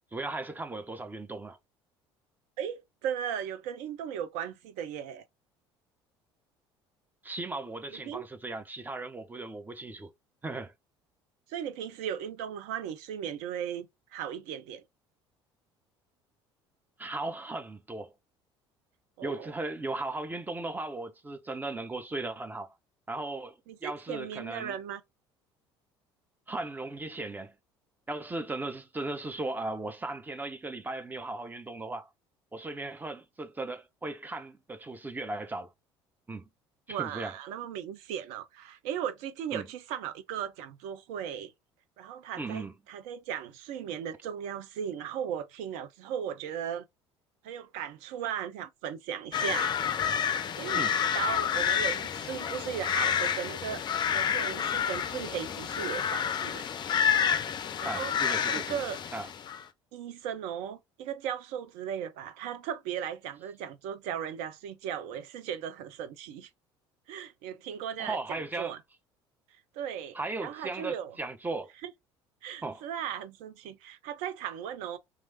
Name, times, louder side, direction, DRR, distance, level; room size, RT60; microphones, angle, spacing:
voice 1, 0.1-1.6 7.2-10.1 10.4-10.7 17.0-18.1 19.2-22.7 23.1-24.8 26.5-27.6 28.1-32.1 32.5-35.7 36.3-36.5 36.9-37.3 39.5-39.7 42.4-42.7 50.7-50.9 57.8-58.8 59.1-59.3 68.0-68.7 70.1-71.7 72.6-72.8, right 2 dB, 15° right, 0.6 m, -37 dB
voice 2, 2.6-5.2 7.9-8.2 11.5-14.8 19.2-19.5 23.7-25.0 36.9-41.5 42.0-46.9 47.4-49.7 50.5-56.7 57.8-59.0 59.9-66.5 67.1-68.8 69.7-71.2 71.8-71.9 72.4-75.0, right 9 dB, 55° right, 0.5 m, -37 dB
sound 1, 49.3-59.6, left 8 dB, 30° left, 0.4 m, -29 dB
3.0 x 2.4 x 2.8 m
figure-of-eight pair, 60°, 14 cm